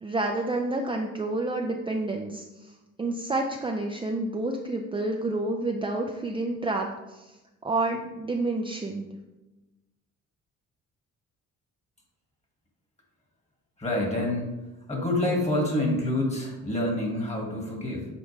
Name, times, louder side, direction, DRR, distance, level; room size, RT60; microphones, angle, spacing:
voice 1, 0.0-2.4 3.0-7.3 7.6-9.1, right 2 dB, 15° right, 1 dB, 0.5 m, -29 dB
voice 2, 13.8-14.5 14.9-18.1, left 1 dB, 20° left, 0 dB, 2.0 m, -27 dB
7.9 x 4.1 x 3.3 m, 1.1 s
cardioid pair, 90°, 30 cm